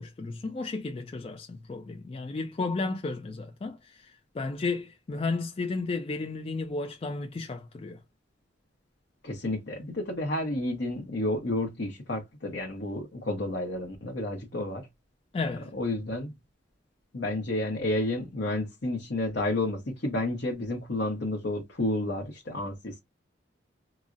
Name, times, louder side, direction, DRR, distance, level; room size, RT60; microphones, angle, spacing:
voice 1, 0.0-8.0 15.3-15.7, left 3 dB, 30° left, 0.3 m, -33 dB
voice 2, 9.2-14.9 15.7-16.3 17.1-23.0, left 1 dB, 60° left, 0.7 m, -31 dB
3.8 x 2.0 x 2.4 m
head